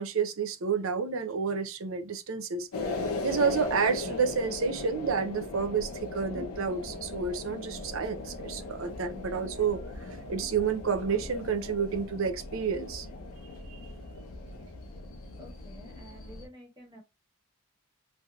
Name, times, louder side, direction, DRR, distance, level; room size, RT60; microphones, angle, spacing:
voice 1, 0.0-2.7 3.2-13.1 13.7-13.8, right 5 dB, 65° right, 0.6 m, -30 dB
sound 1, 2.7-16.5, left 2 dB, 90° left, 0.8 m, -38 dB
voice 2, 15.4-17.0, equal, 20° right, 1.4 m, -50 dB
3.2 x 2.8 x 2.4 m
head